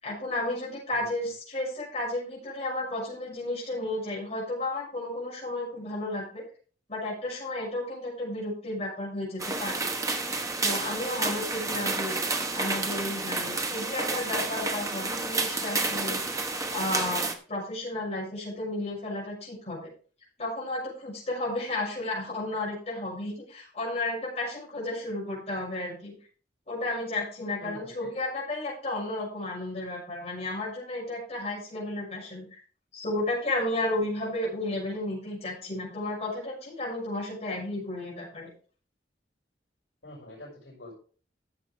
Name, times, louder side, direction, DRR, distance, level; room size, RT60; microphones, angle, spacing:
voice 1, 0.0-6.4 6.9-9.8 10.6-12.2 12.5-16.2 16.7-19.8 20.4-26.1 26.7-32.6 32.9-38.5, left 1 dB, 35° left, -5 dB, 6.2 m, -33 dB
sound 1, 9.4-17.3, right 3 dB, 20° right, 1.0 m, -30 dB
voice 2, 27.6-28.3 40.0-40.9, left 1 dB, 80° left, -2 dB, 5.7 m, -46 dB
14.0 x 7.5 x 3.4 m, 0.41 s
head